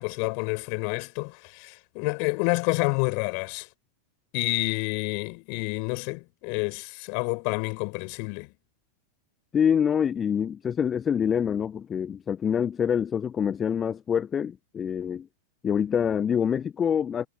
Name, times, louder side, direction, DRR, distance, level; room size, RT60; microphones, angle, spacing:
voice 1, 0.0-3.7 4.3-8.5, left 40 dB or more, 45° left, 6.9 m, -29 dB
voice 2, 9.5-15.3 15.6-17.3, left 8 dB, 20° left, 1.1 m, -26 dB
figure-of-eight pair, 90°, 0 cm